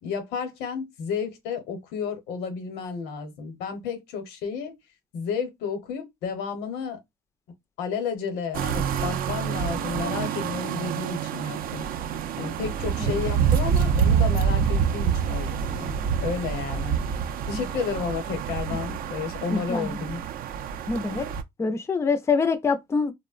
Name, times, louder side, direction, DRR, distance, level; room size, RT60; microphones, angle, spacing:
voice 1, 0.0-4.7 5.1-7.0 7.8-11.9 12.4-15.9 16.2-17.0 17.5-20.2, left 6 dB, 90° left, 0.8 m, -32 dB
sound 1, 8.5-21.4, right 7 dB, 60° right, 0.4 m, -27 dB
voice 2, 19.5-20.0 20.9-21.3 21.6-23.1, left 4 dB, 15° left, 0.4 m, -25 dB
3.0 x 2.1 x 2.3 m
cardioid pair, 110°, 17 cm